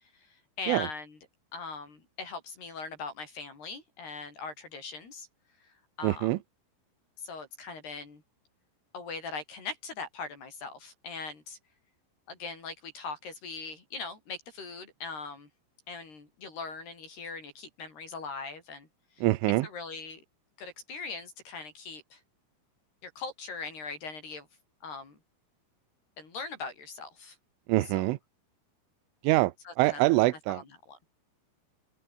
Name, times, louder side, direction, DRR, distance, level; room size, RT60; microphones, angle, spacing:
voice 1, 0.6-1.2 1.5-5.3 6.0-6.3 7.2-8.2 8.9-11.6 12.3-15.5 15.9-18.9 19.2-19.3 19.6-20.2 20.6-22.2 23.0-24.5 24.8-25.2 26.2-27.4 27.9-28.0 29.7-30.0 30.9-31.0, left 4 dB, 50° left, 7.8 m, -40 dB
voice 2, 6.0-6.4 19.2-19.7 27.7-28.2 29.2-30.6, right 19 dB, 80° right, 3.3 m, -25 dB
omnidirectional pair, 5.9 m